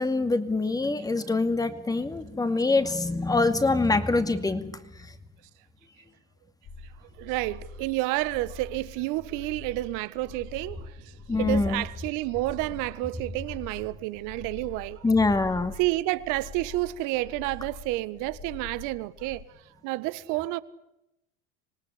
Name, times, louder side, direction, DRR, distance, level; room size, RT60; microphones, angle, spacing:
voice 1, 0.0-4.8 11.3-11.8 15.0-15.7, left 3 dB, 10° left, 2.3 m, -24 dB
sound 1, 6.6-19.4, left 3 dB, 45° left, 3.7 m, -45 dB
voice 2, 7.2-15.0 15.8-19.4 19.8-20.6, right 19 dB, 65° right, 1.6 m, -30 dB
26.5 x 18.5 x 8.6 m
supercardioid pair, 120°, 34 cm